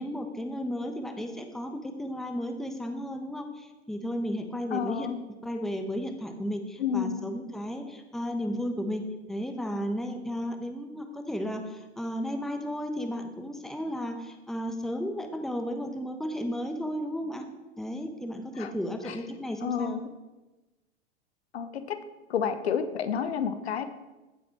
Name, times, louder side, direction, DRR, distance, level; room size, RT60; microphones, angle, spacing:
voice 1, 0.0-5.1 5.4-17.5 17.8-20.0, equal, ahead, 6 dB, 1.1 m, -34 dB
voice 2, 4.7-5.2 6.8-7.3 18.6-18.7 19.0-19.2 19.6-20.0 21.5-22.0 22.3-23.9, left 7 dB, 65° left, 10 dB, 1.1 m, -30 dB
15.5 x 7.7 x 4.7 m, 1.1 s
figure-of-eight pair, 95°, 35 cm